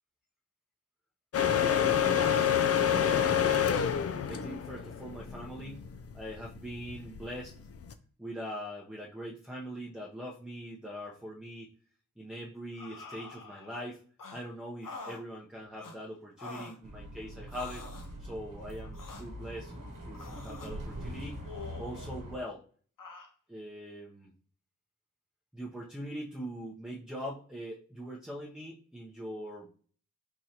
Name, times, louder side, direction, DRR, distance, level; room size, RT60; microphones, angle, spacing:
sound 1, 1.3-7.9, left 8 dB, 50° left, 0.4 m, -28 dB
voice 1, 1.5-2.5 3.0-3.9 4.3-5.9 6.1-7.5 8.2-11.7 12.2-14.0 14.3-17.9 18.2-19.7 20.1-21.4 21.8-22.6 23.5-24.3 25.5-29.7, equal, ahead, -2 dB, 0.7 m, -42 dB
sound 2, 12.7-13.8 14.2-14.4 14.8-15.2 15.8-16.0 16.4-16.8 17.5-18.1 18.9-19.3 20.1-20.7 21.4-22.2 23.0-23.3, left 3 dB, 85° left, 0.8 m, -46 dB
Bus, 16.8-22.4, equal, 90° right, 1.1 m, -43 dB
3.9 x 3.1 x 2.8 m, 0.44 s
wide cardioid pair, 65°, 32 cm